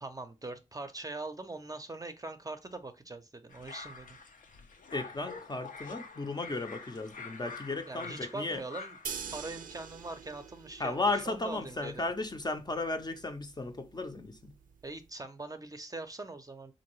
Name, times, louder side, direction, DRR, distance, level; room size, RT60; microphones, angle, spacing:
voice 1, 0.0-4.2 7.9-9.0 9.3-12.0 14.8-16.7, right 2 dB, 25° right, 0.5 m, -42 dB
sound 1, 3.5-9.1, left 4 dB, 75° left, 0.5 m, -47 dB
voice 2, 4.9-8.6 10.8-14.5, left 2 dB, 30° left, 0.5 m, -35 dB
sound 2, 9.0-15.1, right 7 dB, 85° right, 0.4 m, -46 dB
3.7 x 2.6 x 3.0 m
cardioid pair, 50°, 14 cm